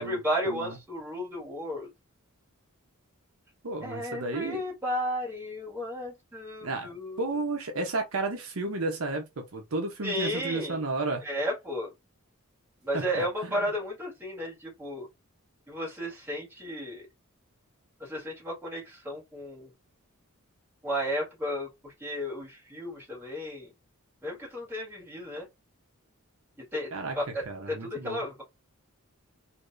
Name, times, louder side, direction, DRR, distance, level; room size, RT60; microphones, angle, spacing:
voice 1, 0.0-1.9 3.8-7.2 10.0-10.8 11.2-11.9 12.8-15.1 15.7-17.1 18.0-19.7 20.8-23.7 24.2-25.5 26.7-26.9 27.2-28.4, equal, 10° right, 1.9 m, -33 dB
voice 2, 3.6-4.6 6.6-6.9 7.2-11.2 12.9-13.6 26.9-27.2 27.5-28.2, right 2 dB, 75° right, 0.8 m, -32 dB
3.4 x 2.7 x 2.6 m
head